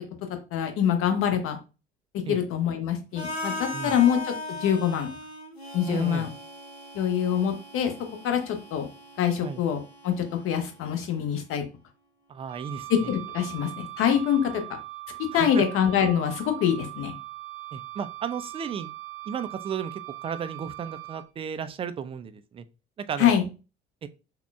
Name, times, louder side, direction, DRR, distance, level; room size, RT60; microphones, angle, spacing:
voice 1, 0.5-1.6 2.3-4.3 4.6-5.1 5.7-6.3 6.9-7.9 8.2-8.9 9.2-9.8 10.0-11.6 12.9-14.6 15.3-17.1 23.2-23.5, left 9 dB, 45° left, 0.9 m, -24 dB
Harmonica, 3.2-11.1, left 1 dB, 90° left, 0.5 m, -39 dB
voice 2, 5.9-6.3 9.4-9.6 12.3-13.1 15.3-15.6 17.7-18.9 19.3-22.6 23.1-23.3 24.0-24.1, right 7 dB, 20° right, 0.3 m, -34 dB
Wind instrument woodwind instrument, 12.5-21.3, right 18 dB, 70° right, 0.6 m, -40 dB
5.7 x 2.1 x 2.3 m
figure-of-eight pair, 55°, 30 cm